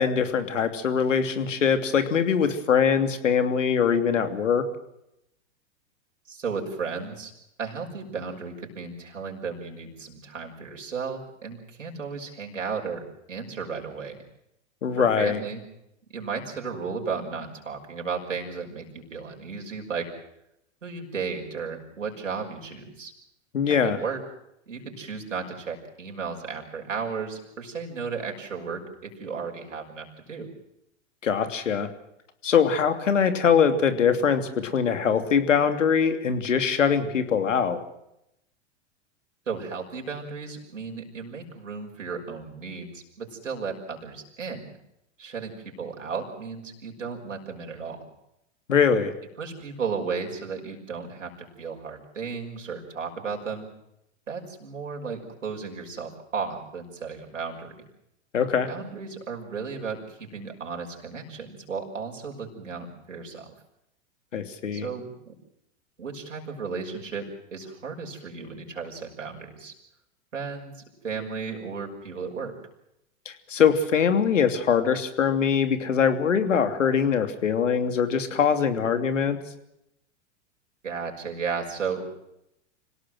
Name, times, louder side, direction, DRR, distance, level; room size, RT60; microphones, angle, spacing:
voice 1, 0.0-4.6 14.8-15.4 23.5-24.0 31.2-31.9 32.4-37.8 48.7-49.1 58.3-58.7 64.3-64.9 73.2-79.4, left 7 dB, 85° left, 8 dB, 3.0 m, -22 dB
voice 2, 6.3-7.3 7.6-14.2 15.0-15.6 16.1-20.1 20.8-23.1 23.7-24.2 24.7-30.5 39.5-44.7 45.2-48.0 49.4-53.7 54.3-57.8 58.7-63.5 64.7-65.3 66.0-69.7 70.3-72.6 80.8-82.2, right 5 dB, 85° right, 0 dB, 6.2 m, -34 dB
27.0 x 18.0 x 7.8 m, 0.82 s
hypercardioid pair, 105°, 37 cm